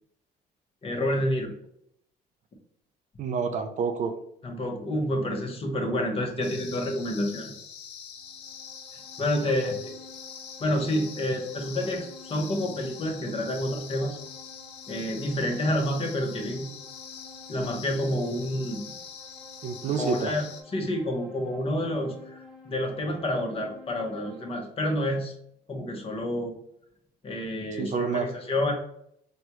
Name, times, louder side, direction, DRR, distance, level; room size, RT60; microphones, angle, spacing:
voice 1, 0.8-1.5 4.4-7.5 9.2-9.9 10.6-14.2 14.9-16.7 17.5-18.8 20.0-20.5 20.7-25.3 25.7-26.5 27.2-28.7, left 1 dB, 35° left, 2 dB, 0.9 m, -29 dB
voice 2, 3.2-4.2 19.6-20.4 27.8-28.3, right 5 dB, 45° right, 8 dB, 0.4 m, -28 dB
sound 1, 6.4-20.6, left 7 dB, 75° left, 0.6 m, -44 dB
sound 2, 8.2-24.5, left 2 dB, ahead, 1.2 m, -51 dB
4.3 x 2.2 x 2.9 m, 0.73 s
cardioid pair, 110°, 17 cm